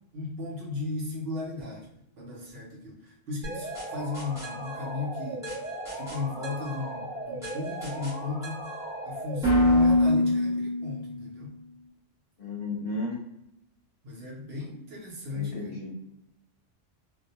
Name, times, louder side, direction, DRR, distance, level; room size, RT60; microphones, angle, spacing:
voice 1, 0.1-1.9 2.2-5.5 6.0-8.7 9.1-11.5 14.0-15.6, left 3 dB, 60° right, -3 dB, 0.8 m, -35 dB
sound 1, 3.4-11.2, left 1 dB, 5° right, 0.9 m, -28 dB
voice 2, 12.4-13.2 15.3-15.9, left 2 dB, 55° left, -3 dB, 0.7 m, -34 dB
2.2 x 2.1 x 2.8 m, 0.81 s
omnidirectional pair, 1.3 m